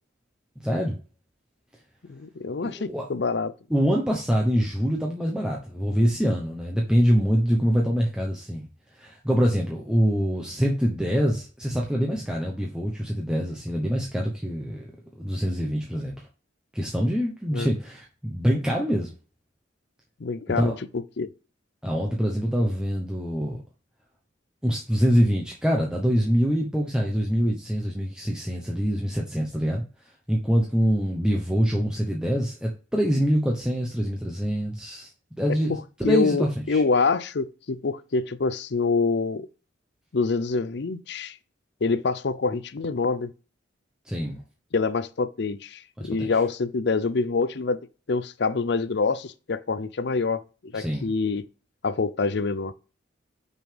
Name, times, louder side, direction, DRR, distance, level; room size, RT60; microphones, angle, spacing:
voice 1, 0.6-1.0 2.6-3.1 3.7-8.7 9.0-14.9 15.2-16.1 16.7-19.1 20.6-20.8 21.8-23.6 24.6-29.8 30.3-35.1 35.4-36.8 44.1-44.4 46.0-46.3 50.7-51.1, equal, 5° right, 0.9 m, -25 dB
voice 2, 2.1-3.5 17.5-17.7 20.2-21.3 35.7-39.5 40.1-41.4 41.8-43.3 44.7-47.8 48.1-51.4 51.8-52.7, left 4 dB, 60° left, 0.5 m, -26 dB
6.1 x 5.5 x 3.4 m
head